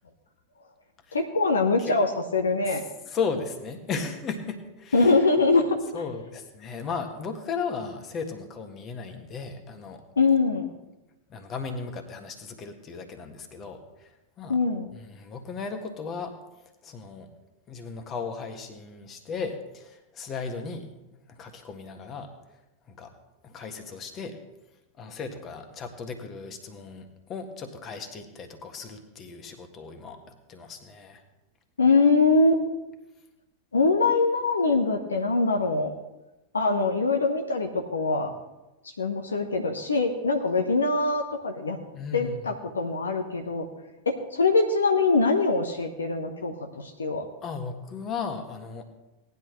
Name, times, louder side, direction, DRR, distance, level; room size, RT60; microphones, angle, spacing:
voice 1, 1.1-2.8 4.9-5.8 10.2-10.7 14.5-14.9 31.8-32.6 33.7-35.9 36.5-38.3 39.0-41.8 42.1-43.6 44.1-47.3, left 3 dB, 75° left, 4 dB, 1.1 m, -23 dB
voice 2, 2.6-5.2 5.9-10.0 11.3-14.1 14.4-14.6 14.9-16.3 16.8-17.3 17.7-20.9 21.3-22.3 22.9-23.1 23.4-24.4 25.0-30.2 30.5-31.2 41.9-42.4 47.4-48.8, left 5 dB, 30° left, 6 dB, 1.6 m, -36 dB
18.0 x 11.0 x 3.2 m, 1.0 s
figure-of-eight pair, 90°, 0 cm